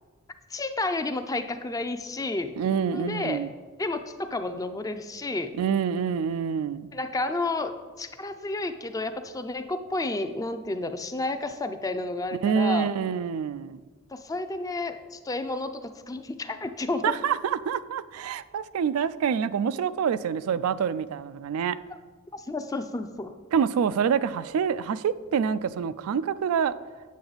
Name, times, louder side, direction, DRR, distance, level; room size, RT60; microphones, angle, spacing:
voice 1, 0.5-2.5 2.9-3.4 3.8-5.5 6.9-12.9 14.1-17.2 22.3-23.3, left 2 dB, 15° left, 9 dB, 0.4 m, -31 dB
voice 2, 2.6-3.5 5.6-6.9 12.4-13.8 17.0-21.8 23.5-26.7, right 7 dB, 90° right, 15 dB, 0.3 m, -26 dB
8.4 x 6.8 x 4.0 m, 1.4 s
head